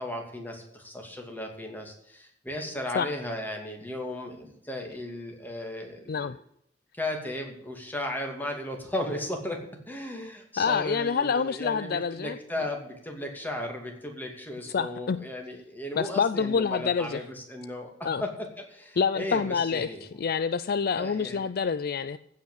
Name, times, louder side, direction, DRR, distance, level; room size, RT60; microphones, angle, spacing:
voice 1, 0.0-6.3 6.9-9.6 9.9-17.9 18.2-18.3 18.6-20.2 21.0-21.5, left 1 dB, 10° left, 2 dB, 2.5 m, -35 dB
voice 2, 10.6-12.4 14.7-15.2 16.0-17.2 18.0-18.2 19.0-22.2, left 6 dB, 55° left, 14 dB, 0.4 m, -27 dB
15.5 x 5.7 x 8.2 m, 0.72 s
head